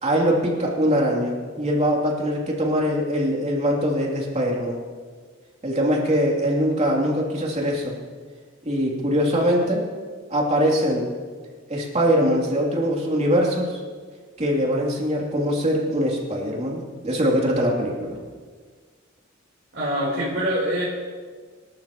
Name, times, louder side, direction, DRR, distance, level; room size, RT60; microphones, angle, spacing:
voice 1, 0.0-4.8 5.6-7.9 8.6-9.8 10.3-11.1 11.7-13.8 14.4-18.2, equal, 35° right, -2 dB, 3.1 m, -22 dB
voice 2, 19.7-20.8, equal, 60° right, -8 dB, 4.0 m, -24 dB
26.0 x 13.0 x 3.1 m, 1.5 s
head